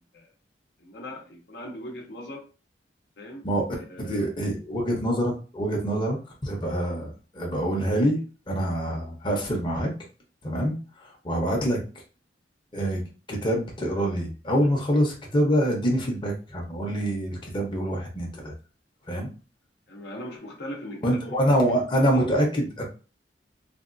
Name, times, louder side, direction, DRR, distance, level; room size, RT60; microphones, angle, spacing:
voice 1, 0.8-2.5 3.2-4.2 19.9-21.8 22.1-22.2, equal, 65° left, 1 dB, 0.8 m, -40 dB
voice 2, 4.0-6.2 6.4-8.2 8.5-9.9 10.4-10.7 11.0-11.8 12.7-13.0 13.3-18.5 19.1-19.3 21.0-22.8, equal, 30° left, -1 dB, 0.8 m, -25 dB
3.4 x 2.3 x 2.5 m, 0.35 s
head